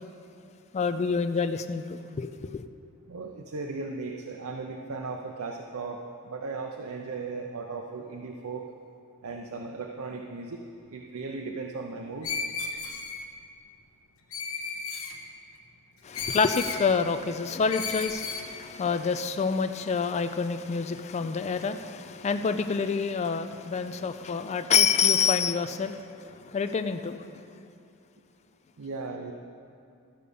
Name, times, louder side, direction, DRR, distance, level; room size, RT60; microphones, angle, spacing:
voice 1, 0.7-2.6 16.0-27.3, left 5 dB, 30° left, 9 dB, 0.3 m, -27 dB
voice 2, 3.1-8.6 9.2-10.6 10.9-12.3 28.8-29.3, right 4 dB, 75° right, 2 dB, 0.6 m, -37 dB
Screech, 12.2-13.2 14.3-15.1 16.1-16.8 17.7-18.5, left 5 dB, 70° left, 0.9 m, -34 dB
13.0 x 5.0 x 6.8 m, 2.5 s
head